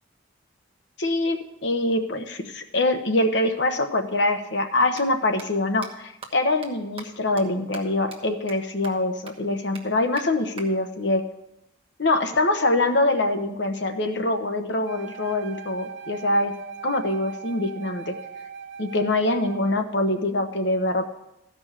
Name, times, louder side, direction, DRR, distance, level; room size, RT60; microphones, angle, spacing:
voice 1, 1.0-11.2 12.0-16.6 16.8-18.1 18.8-21.0, left 2 dB, 60° left, 6 dB, 1.0 m, -24 dB
sound 1, 4.9-5.0 5.4-5.5 5.8-5.9 6.2-6.3 6.6-6.7 7.0-7.1 7.4-7.5 7.7-7.8 8.1-8.2 8.5-8.6 8.8-8.9 9.3-9.4 9.7-9.8 10.2-10.3 10.6-10.7 12.3-13.3, right 4 dB, 25° right, 1.2 m, -42 dB
Wind instrument woodwind instrument, 14.8-19.9, right 6 dB, 60° right, 0.8 m, -40 dB
14.0 x 5.3 x 6.6 m, 0.88 s
head